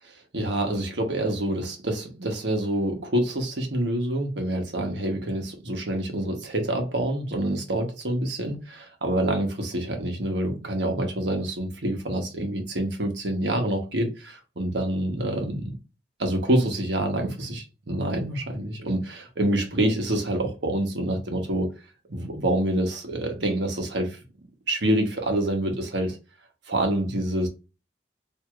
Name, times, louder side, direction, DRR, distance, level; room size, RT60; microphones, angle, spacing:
voice 1, 0.3-15.8 16.2-21.7 22.1-24.2 24.7-26.2 26.7-27.5, right 1 dB, 80° right, 1.2 m, -27 dB
4.7 x 2.8 x 2.4 m
head